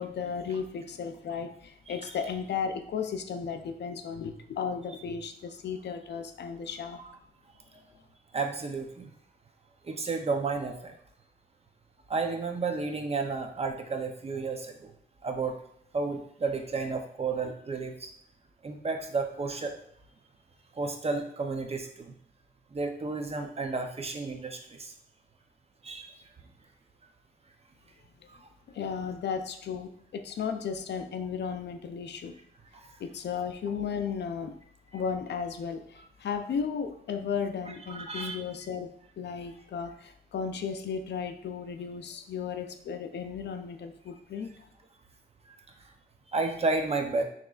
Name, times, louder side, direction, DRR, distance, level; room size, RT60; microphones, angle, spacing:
voice 1, 0.0-7.0 28.7-32.3 33.0-34.5 34.9-38.9 39.2-44.5, left 6 dB, 75° left, 7 dB, 0.4 m, -34 dB
voice 2, 8.3-9.1 9.8-10.9 12.1-14.9 15.2-15.6 15.9-18.1 18.6-19.7 20.7-22.1 22.7-24.9 25.8-26.1 28.3-28.4 32.7-32.9 37.7-38.4 46.3-47.2, right 3 dB, 35° right, 4 dB, 0.6 m, -32 dB
6.0 x 3.0 x 2.4 m, 0.67 s
wide cardioid pair, 95°, 18 cm